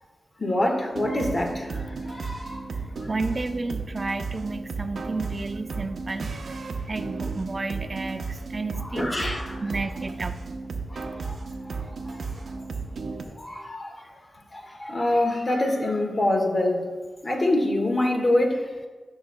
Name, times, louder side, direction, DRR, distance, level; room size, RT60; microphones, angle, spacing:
voice 1, 0.4-2.7 8.8-9.6 10.9-11.3 12.1-12.2 13.4-14.1 14.5-16.9 17.2-18.7, left 1 dB, 50° left, 2 dB, 1.5 m, -26 dB
sound 1, 0.9-13.2, right 4 dB, 80° right, 0.8 m, -34 dB
voice 2, 3.1-6.5 6.9-9.1 9.6-10.4, right 3 dB, 45° right, 9 dB, 0.5 m, -32 dB
13.5 x 5.9 x 2.2 m, 1.3 s
cardioid pair, 50°, 0 cm